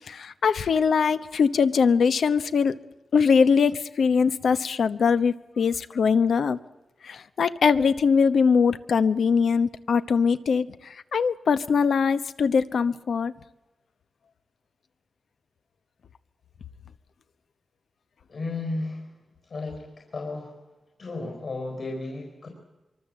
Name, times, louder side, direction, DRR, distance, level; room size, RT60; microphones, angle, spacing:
voice 1, 0.1-2.8 3.1-6.6 7.0-13.3, left 6 dB, 75° left, 13 dB, 1.0 m, -22 dB
voice 2, 18.3-19.1 19.4-20.6 21.0-22.5, left 2 dB, 55° left, 2 dB, 4.7 m, -34 dB
24.5 x 24.0 x 7.7 m, 1.1 s
wide cardioid pair, 160°, 0 cm